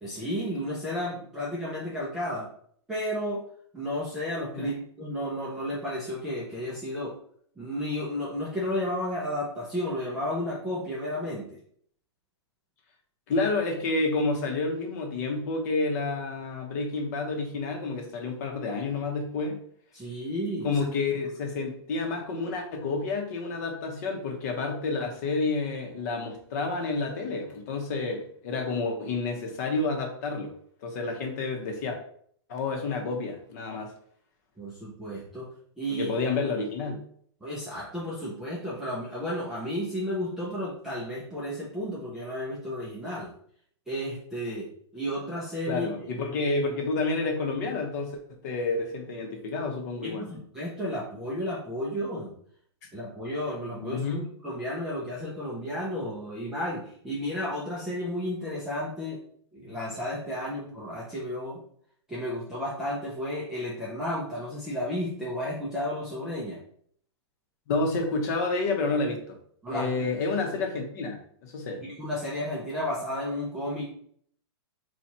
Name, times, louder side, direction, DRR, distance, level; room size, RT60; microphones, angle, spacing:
voice 1, 0.0-2.5 2.9-3.4 3.7-7.2 7.6-11.6 19.9-20.7 34.6-35.5 35.8-36.1 37.4-43.3 43.9-46.1 50.0-52.3 52.9-54.0 54.4-59.2 59.5-61.6 62.1-66.6 69.6-70.1 71.8-73.9, equal, 5° right, -7 dB, 0.5 m, -32 dB
voice 2, 13.3-19.6 20.6-30.5 30.8-32.0 32.5-33.9 35.9-37.0 45.7-50.3 53.8-54.3 67.7-69.4 69.7-71.2 71.4-71.8, left 3 dB, 35° left, 3 dB, 0.9 m, -29 dB
4.4 x 2.3 x 4.1 m, 0.62 s
hypercardioid pair, 165°, 15 cm